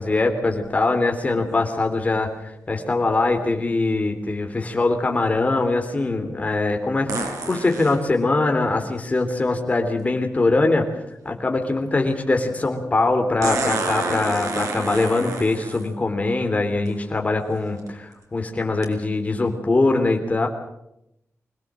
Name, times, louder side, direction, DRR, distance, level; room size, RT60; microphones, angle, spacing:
voice 1, 0.0-10.9 11.2-20.5, left 2 dB, 25° left, 4 dB, 3.3 m, -22 dB
sound 1, 0.6-0.7 7.1-8.0 10.0-10.1 13.4-15.9 16.8-16.9 17.6-17.9 18.8-18.9, right 3 dB, 90° right, 4.5 m, -28 dB
25.0 x 18.5 x 7.6 m, 0.83 s
wide cardioid pair, 180°, 5 cm